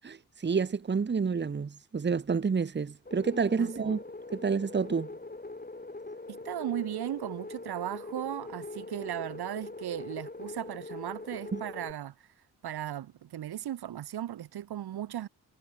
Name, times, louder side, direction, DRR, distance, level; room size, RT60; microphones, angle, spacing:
voice 1, 0.0-4.0 4.3-5.1 11.5-11.6, right 5 dB, 30° right, 0.9 m, -29 dB
sound 1, 3.1-11.9, left 2 dB, 25° left, 4.8 m, -42 dB
voice 2, 3.6-3.9 6.3-12.3 12.6-15.3, right 11 dB, 75° right, 1.0 m, -37 dB
cardioid pair, 65°, 38 cm